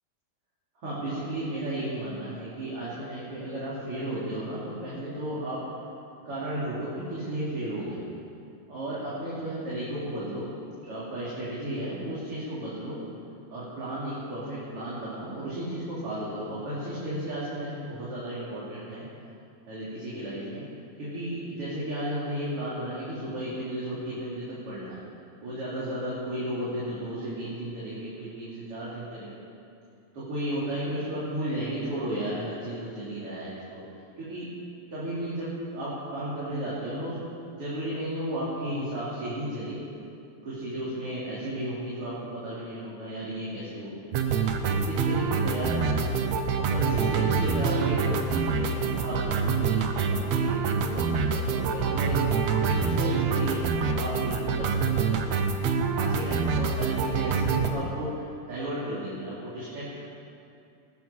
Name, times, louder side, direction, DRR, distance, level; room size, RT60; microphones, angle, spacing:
voice 1, 0.8-5.6 6.2-8.0 8.7-10.5 10.8-13.0 13.5-19.0 19.7-20.6 21.0-25.0 25.4-29.3 30.1-33.8 34.2-34.5 34.9-37.2 37.5-39.8 40.4-43.9 44.6-46.2 46.6-52.2 52.6-55.3 55.9-60.0, right 1 dB, 45° right, -9 dB, 3.7 m, -34 dB
sound 1, 44.1-57.7, right 5 dB, 70° right, 2.0 m, -26 dB
20.0 x 9.5 x 5.8 m, 2.6 s
omnidirectional pair, 3.5 m